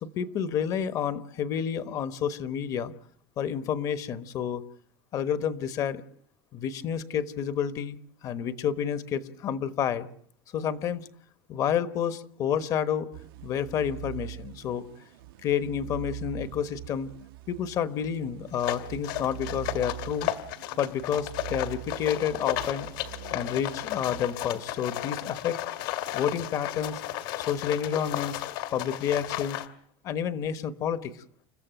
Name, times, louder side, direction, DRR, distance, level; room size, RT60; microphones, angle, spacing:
voice 1, 0.0-2.9 3.4-4.6 5.1-6.0 6.5-10.1 10.5-11.1 11.5-13.1 13.4-14.8 15.4-17.1 17.5-20.3 20.8-22.9 23.3-25.6 26.1-27.0 27.5-28.4 28.7-29.6 30.0-31.1, left 8 dB, 30° left, 13 dB, 1.1 m, -29 dB
sound 1, 13.1-25.0, right 17 dB, 75° right, 1.0 m, -43 dB
sound 2, 18.5-29.7, left 14 dB, 65° left, 2.2 m, -34 dB
29.0 x 15.0 x 9.1 m, 0.64 s
supercardioid pair, 175°, 12 cm